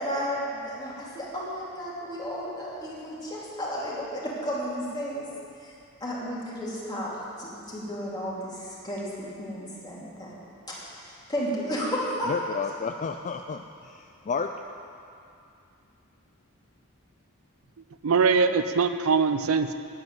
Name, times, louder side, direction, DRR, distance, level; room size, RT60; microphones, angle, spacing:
voice 1, 0.0-5.3 5.6-5.7 6.0-7.1 7.4-10.3 10.7-12.3, equal, 20° left, -6 dB, 2.7 m, -33 dB
voice 2, 12.3-14.5 14.8-14.9, left 5 dB, 35° left, 5 dB, 0.4 m, -32 dB
voice 3, 18.0-19.7, right 5 dB, 70° right, 9 dB, 0.5 m, -22 dB
9.1 x 7.9 x 9.2 m, 2.5 s
head